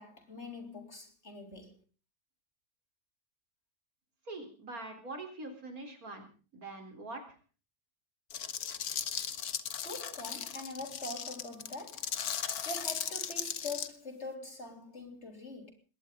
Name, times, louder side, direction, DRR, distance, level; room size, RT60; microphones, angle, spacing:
voice 1, 0.0-1.7 9.8-12.1 12.6-15.7, left 2 dB, 45° left, 3.9 m, -44 dB
voice 2, 4.2-6.3 6.5-7.4, right 2 dB, 70° right, 4.4 m, -43 dB
sound 1, 8.3-13.9, left 8 dB, 85° left, 1.7 m, -37 dB
20.5 x 18.0 x 3.8 m
omnidirectional pair, 1.6 m